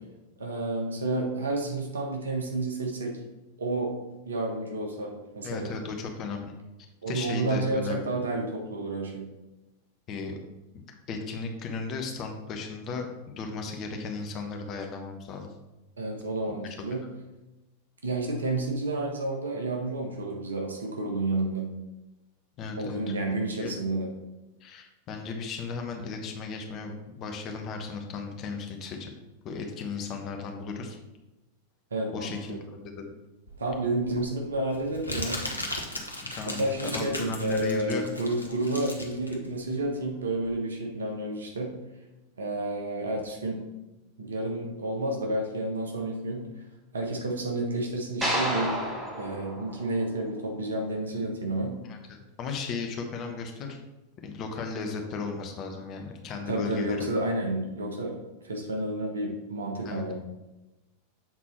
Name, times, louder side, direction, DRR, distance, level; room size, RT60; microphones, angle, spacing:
voice 1, 0.4-3.1 3.6-3.9 4.2-5.7 7.0-9.3 16.0-17.0 18.0-21.7 22.8-24.1 31.9-32.6 33.6-35.4 36.4-41.7 42.4-43.6 44.2-46.5 46.9-48.7 49.2-51.8 56.5-58.1 58.4-60.1, right 2 dB, 70° right, 1 dB, 1.3 m, -30 dB
voice 2, 5.4-6.5 7.1-8.2 10.1-10.4 10.7-10.8 11.1-15.5 17.0-17.1 22.6-23.0 23.5-23.7 24.6-29.1 29.4-31.0 32.1-33.1 36.2-38.2 51.8-53.8 54.2-57.1 59.8-60.0, left 4 dB, 35° left, 3 dB, 1.1 m, -35 dB
Crumpling crinkling, 33.5-40.6, left 1 dB, 85° left, 0.9 m, -37 dB
sound 1, 48.2-50.6, equal, 10° right, 1.6 m, -31 dB
7.5 x 4.1 x 4.4 m, 1.0 s
figure-of-eight pair, 90°, 0 cm